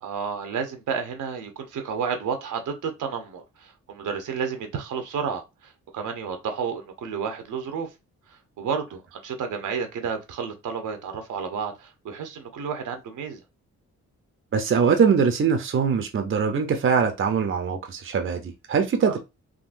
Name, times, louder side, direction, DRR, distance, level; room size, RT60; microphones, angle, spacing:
voice 1, 0.0-7.9 8.3-13.4 19.1-19.2, right 6 dB, 85° right, 0.9 m, -31 dB
voice 2, 14.5-19.2, right 6 dB, 45° right, 0.7 m, -22 dB
3.7 x 2.6 x 2.6 m
cardioid pair, 115°, 30 cm